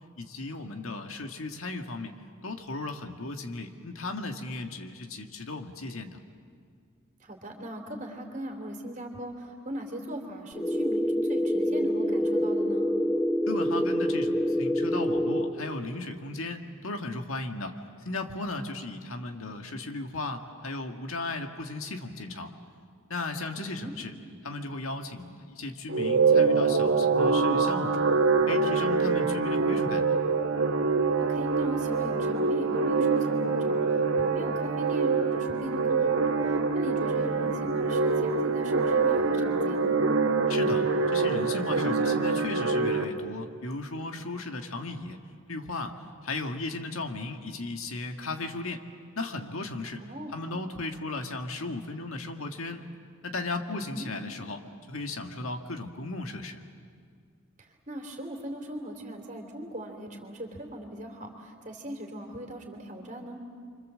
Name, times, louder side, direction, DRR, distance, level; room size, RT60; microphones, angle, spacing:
voice 1, 0.2-2.1 2.4-6.2 13.5-17.7 18.1-22.5 23.1-24.1 24.4-28.1 28.5-30.2 40.5-45.2 45.5-45.9 46.2-48.8 49.2-50.0 50.3-52.8 53.2-56.6, left 2 dB, 70° left, 5 dB, 1.8 m, -36 dB
voice 2, 7.2-12.9 23.6-23.9 31.2-39.9 50.0-50.3 53.7-54.1 57.6-63.4, equal, 35° right, 3 dB, 3.3 m, -39 dB
sound 1, 10.5-15.5, equal, 10° left, 1.0 m, -26 dB
sound 2, 25.9-43.0, right 4 dB, 65° right, 1.8 m, -25 dB
30.0 x 25.0 x 7.6 m, 2.1 s
head